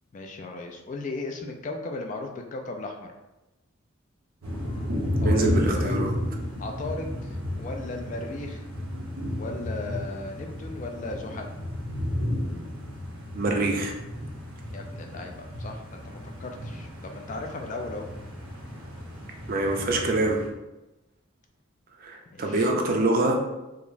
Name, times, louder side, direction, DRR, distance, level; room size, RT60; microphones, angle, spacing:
voice 1, 0.1-3.1 5.2-6.0 6.6-8.7 9.4-11.5 14.7-18.1 22.3-22.7, left 2 dB, 35° left, 3 dB, 0.3 m, -36 dB
sound 1, 4.4-20.5, left 1 dB, 90° right, 0.9 m, -32 dB
voice 2, 5.2-6.2 13.3-14.0 19.5-20.4 22.0-23.4, right 2 dB, 45° right, 1 dB, 0.4 m, -25 dB
4.9 x 2.0 x 2.5 m, 1.0 s
head